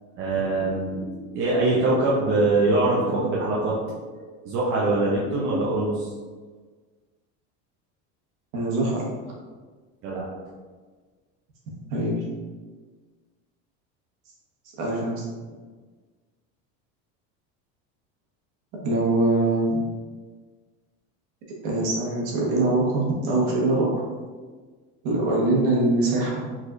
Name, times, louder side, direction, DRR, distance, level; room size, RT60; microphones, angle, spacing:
voice 1, 0.2-6.1 10.0-10.3, right 2 dB, 35° right, -5 dB, 0.7 m, -23 dB
voice 2, 8.5-9.1 11.9-12.2 14.8-15.2 18.8-19.8 21.6-24.0 25.0-26.6, right 2 dB, 55° right, -3 dB, 1.3 m, -23 dB
5.0 x 4.1 x 2.5 m, 1.4 s
cardioid pair, 180°, 35 cm